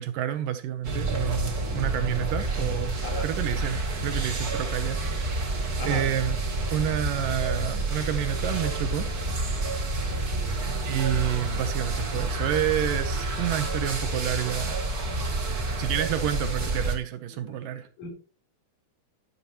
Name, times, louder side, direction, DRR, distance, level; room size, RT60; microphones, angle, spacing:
voice 1, 0.0-2.9 3.2-6.4 6.7-9.1 10.8-14.8 15.8-17.9, right 11 dB, 75° right, 2.4 m, -29 dB
sound 1, 0.8-17.0, right 2 dB, 30° right, 2.1 m, -29 dB
voice 2, 3.0-3.2 5.8-6.0 17.5-17.6 18.0-18.1, left 2 dB, 55° left, 5.1 m, -34 dB
12.5 x 11.5 x 3.0 m
omnidirectional pair, 4.2 m